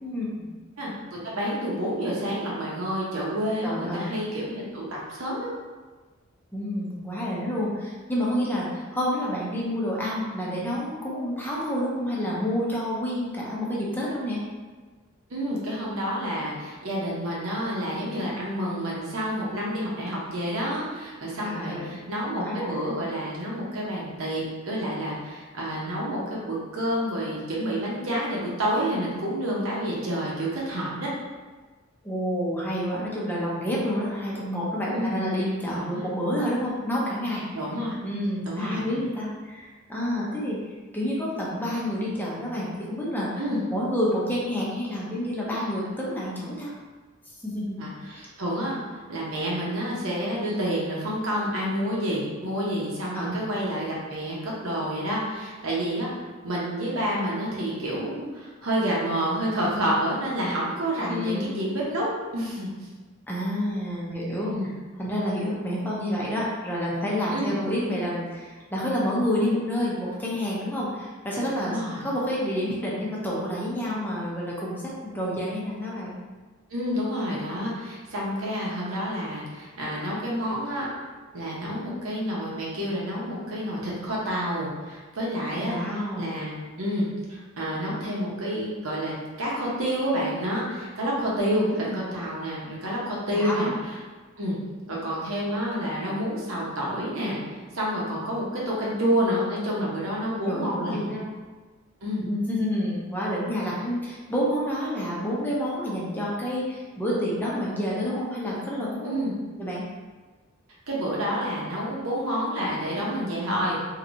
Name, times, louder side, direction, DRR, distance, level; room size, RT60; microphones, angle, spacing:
voice 1, 0.0-0.5 3.6-4.1 6.5-14.4 21.4-22.0 22.4-22.7 32.0-37.4 38.0-40.6 40.9-43.3 43.7-46.7 47.4-47.8 48.2-48.3 53.1-53.4 61.1-61.5 63.3-64.5 65.0-76.2 85.6-86.3 91.7-92.0 93.3-93.7 100.5-101.2 102.2-109.2 109.6-109.8, equal, 10° left, -6 dB, 0.6 m, -29 dB
voice 2, 1.2-5.5 15.3-31.1 34.9-35.1 35.8-36.0 37.5-37.9 38.5-38.8 43.4-43.6 47.8-48.8 49.1-56.1 56.4-62.1 62.3-62.7 64.5-64.7 67.3-67.6 71.6-72.0 76.7-80.9 81.3-85.8 86.2-93.7 94.4-94.6 94.9-97.4 97.7-101.1 102.0-102.2 109.0-109.3 110.9-113.8, equal, 75° right, -5 dB, 0.9 m, -29 dB
3.1 x 2.8 x 2.6 m, 1.3 s
head